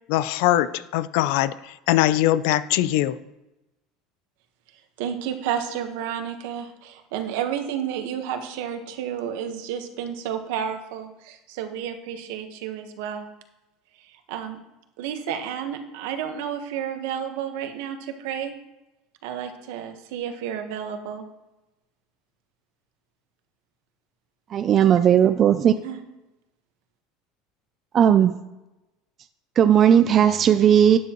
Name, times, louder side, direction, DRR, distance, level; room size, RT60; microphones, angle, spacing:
voice 1, 0.1-3.2, left 14 dB, 65° left, 16 dB, 0.4 m, -22 dB
voice 2, 5.0-13.3 14.0-14.6 15.0-18.5 19.2-21.2 25.8-26.0, right 9 dB, 70° right, 6 dB, 1.2 m, -31 dB
voice 3, 24.5-25.7 27.9-28.3 29.6-31.0, right 9 dB, 25° right, 10 dB, 0.3 m, -16 dB
12.0 x 9.3 x 3.0 m, 0.99 s
cardioid pair, 170°, 0 cm